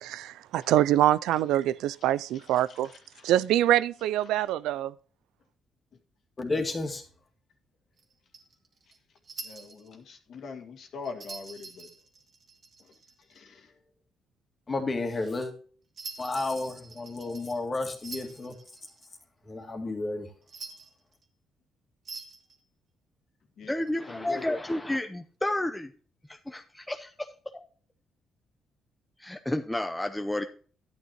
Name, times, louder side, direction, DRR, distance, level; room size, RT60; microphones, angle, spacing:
voice 1, 0.0-2.9 3.2-4.9, right 13 dB, 90° right, 0.3 m, -25 dB
voice 2, 2.8-3.3 9.4-11.9 13.3-13.7 18.1-18.3 23.6-23.7 24.1-24.4, left 4 dB, 65° left, 1.8 m, -43 dB
voice 3, 6.4-7.0 14.7-15.5 16.2-18.5 19.5-20.3, left 2 dB, 30° left, 2.0 m, -31 dB
sound 1, 8.0-10.0 11.0-13.4 16.0-19.1 20.4-21.3 22.1-22.6 23.8-24.4, right 4 dB, 50° right, 2.0 m, -45 dB
voice 4, 23.7-25.9 26.3-27.3 27.5-27.6 29.2-30.5, left 1 dB, 10° left, 0.7 m, -31 dB
11.0 x 9.1 x 2.9 m
cardioid pair, 90°, 0 cm